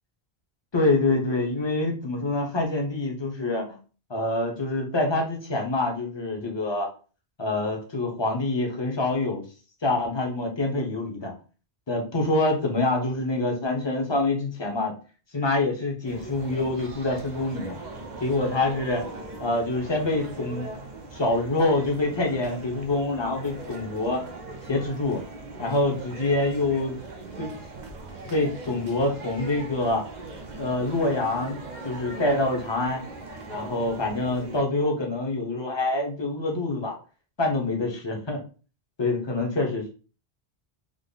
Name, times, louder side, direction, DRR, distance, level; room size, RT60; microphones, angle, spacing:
voice 1, 0.7-3.8 4.1-6.9 7.4-9.4 9.8-11.3 11.9-14.9 15.3-17.8 18.2-19.1 19.4-20.7 21.1-24.2 24.6-25.2 25.6-27.0 27.4-27.5 28.3-30.0 30.6-33.0 33.5-36.9 37.4-38.4 39.0-39.9, left 2 dB, 25° left, 1 dB, 0.8 m, -26 dB
sound 1, 16.0-34.6, right 2 dB, 50° right, 0.6 m, -40 dB
3.7 x 2.0 x 3.8 m, 0.37 s
omnidirectional pair, 1.1 m